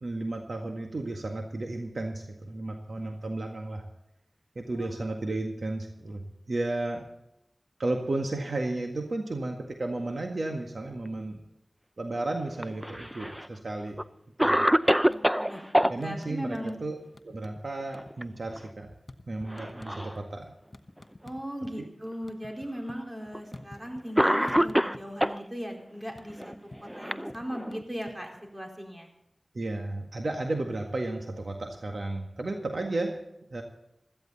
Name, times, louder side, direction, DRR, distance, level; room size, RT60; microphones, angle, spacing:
voice 1, 0.0-3.8 4.6-7.0 7.8-11.4 12.0-14.0 14.4-14.6 15.9-17.0 17.2-18.9 19.3-20.5 29.5-33.2 33.5-33.6, right 2 dB, 70° right, 2 dB, 1.8 m, -33 dB
Cough, 12.6-13.5 14.0-14.1 14.4-15.9 17.8-18.2 18.6-18.7 19.5-20.2 21.0-21.1 22.1-22.2 23.3-23.5 24.2-25.4 26.4-27.8, equal, 5° right, 0.6 m, -25 dB
sound 1, 15.0-15.5 15.8-16.9 17.1-17.6 17.9-21.8 22.1-24.2 24.5-25.3 25.6-28.5, left 2 dB, 45° left, 1.0 m, -50 dB
voice 2, 15.1-16.8 21.2-26.5 26.8-29.1, equal, 25° right, 1 dB, 4.4 m, -38 dB
16.5 x 14.0 x 4.2 m, 0.83 s
wide cardioid pair, 55°, 0 cm